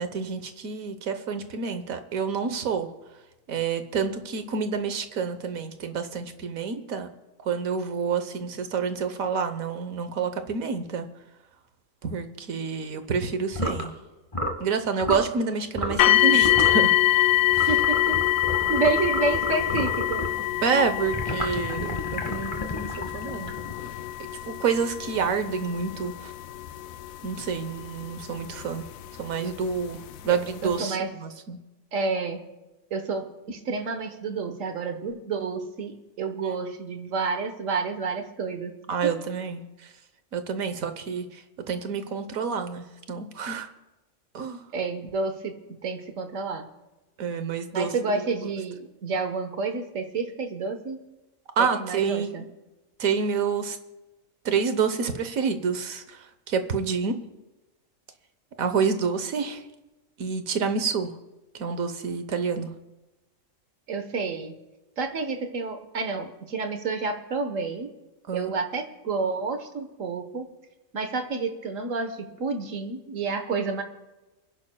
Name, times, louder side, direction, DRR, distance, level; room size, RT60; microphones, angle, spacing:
voice 1, 0.0-2.9 3.5-7.1 7.5-11.1 12.0-13.9 14.6-17.7 20.6-22.9 23.1-23.5 24.5-26.3 27.2-28.8 29.2-30.0 30.2-31.6 36.4-36.6 38.9-39.6 40.3-41.4 41.7-43.7 44.3-44.6 47.2-48.2 51.6-52.4 53.0-53.8 54.4-56.2 56.5-57.2 58.6-59.6 60.2-61.1 61.5-62.7 68.3-68.6, right 5 dB, 90° right, 9 dB, 1.5 m, -28 dB
sound 1, 13.5-13.9 14.3-14.6 15.0-15.3 15.7-16.1 16.4-16.8 17.5-20.4 21.1-23.9, equal, 25° left, 1.5 m, -31 dB
sound 2, 16.0-28.9 29.7-29.8 30.4-30.5, left 15 dB, 90° left, 1.0 m, -25 dB
voice 2, 17.7-18.2 18.7-20.3 30.3-31.1 31.9-32.4 32.9-38.7 39.0-39.1 44.7-46.7 47.7-51.0 51.6-52.4 63.9-64.5 65.0-67.9 68.3-70.4 70.9-73.8, right 4 dB, 70° right, 7 dB, 1.6 m, -29 dB
28.5 x 11.0 x 2.3 m, 1.1 s
omnidirectional pair, 1.4 m